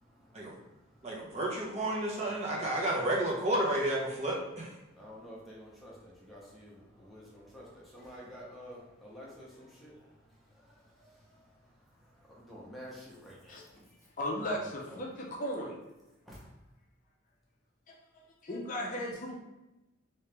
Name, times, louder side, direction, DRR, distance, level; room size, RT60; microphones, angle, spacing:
voice 1, 0.0-1.4 2.4-2.5 4.8-13.9 14.4-14.5 14.9-15.0 16.3-16.4, equal, ahead, -6 dB, 0.8 m, -51 dB
voice 2, 1.0-4.7, right 1 dB, 30° right, -4 dB, 0.7 m, -31 dB
voice 3, 14.2-15.8 17.9-18.0 18.4-19.4, equal, 40° left, -1 dB, 0.5 m, -36 dB
3.1 x 2.8 x 3.3 m, 0.99 s
head